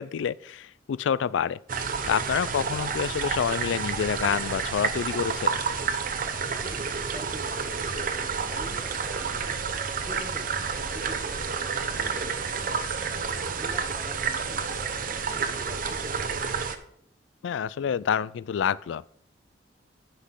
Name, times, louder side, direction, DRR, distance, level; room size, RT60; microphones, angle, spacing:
voice 1, 0.0-1.6 2.0-5.6 17.4-19.1, left 7 dB, 90° left, 0.3 m, -28 dB
sound 1, 1.7-16.7, right 5 dB, 50° right, 0.8 m, -30 dB
voice 2, 6.6-12.7 13.3-16.6, left 1 dB, ahead, 1.2 m, -46 dB
14.5 x 5.9 x 3.7 m
head